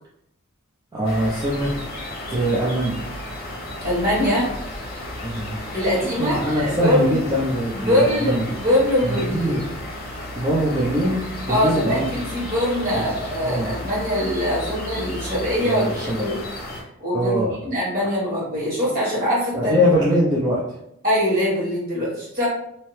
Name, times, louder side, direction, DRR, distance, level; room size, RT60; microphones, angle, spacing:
voice 1, 0.9-1.7 2.3-3.0 5.2-5.6 6.2-8.5 9.0-9.6 10.3-12.0 12.9-13.1 13.4-13.8 15.6-16.3 17.1-17.6 19.5-20.6, equal, 20° right, -7 dB, 0.5 m, -22 dB
sound 1, 1.0-16.8, left 1 dB, 45° left, 0.9 m, -33 dB
voice 2, 3.8-4.5 5.7-7.2 7.7-9.6 11.5-16.4 17.0-19.7 21.0-22.5, equal, 45° right, -6 dB, 1.5 m, -22 dB
2.7 x 2.1 x 3.1 m, 0.75 s
head